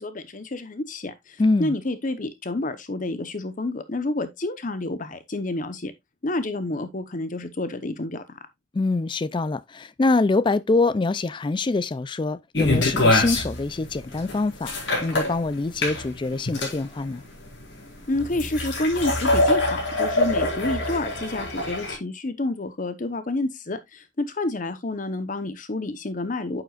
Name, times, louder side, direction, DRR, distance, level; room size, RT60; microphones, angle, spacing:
voice 1, 0.0-5.9 6.2-8.4 18.1-26.6, left 2 dB, 45° left, 0.9 m, -29 dB
voice 2, 1.4-1.7 8.7-14.7 15.0-17.2, left 3 dB, 25° left, 0.3 m, -24 dB
sound 1, 12.5-21.9, left 2 dB, 85° left, 4.3 m, -24 dB
9.2 x 7.6 x 2.4 m
head